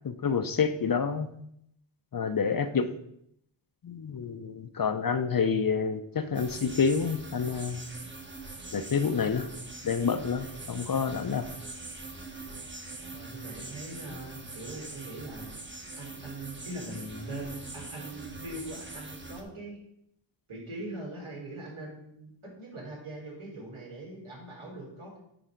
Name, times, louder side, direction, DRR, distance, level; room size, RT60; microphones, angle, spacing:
voice 1, 0.0-1.3 2.1-2.9 3.8-7.8 8.7-9.5 9.8-11.5, left 6 dB, 45° left, 10 dB, 0.6 m, -28 dB
sound 1, 6.3-19.4, right 3 dB, 25° right, 1.1 m, -43 dB
voice 2, 13.1-15.5 16.0-19.8 20.5-25.2, right 1 dB, 75° right, -4 dB, 3.7 m, -41 dB
10.0 x 4.2 x 5.1 m, 0.74 s
wide cardioid pair, 100°, 49 cm